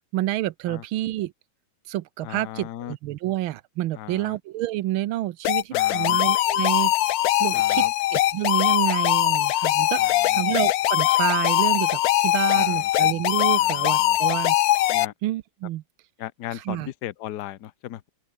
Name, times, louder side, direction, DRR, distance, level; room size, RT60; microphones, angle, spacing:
voice 1, 0.1-1.3 1.9-6.9 7.4-7.8 8.1-14.6 15.2-15.8 16.5-16.9, right 15 dB, 80° right, 1.6 m, -28 dB
voice 2, 2.2-2.9 3.9-4.4 5.7-6.2 7.5-7.9 10.0-10.4 12.5-12.9 13.5-14.2 14.9-15.1 16.2-18.1, left 13 dB, 60° left, 1.3 m, -37 dB
sound 1, 5.4-15.1, left 14 dB, 85° left, 0.8 m, -21 dB
open air
omnidirectional pair, 2.2 m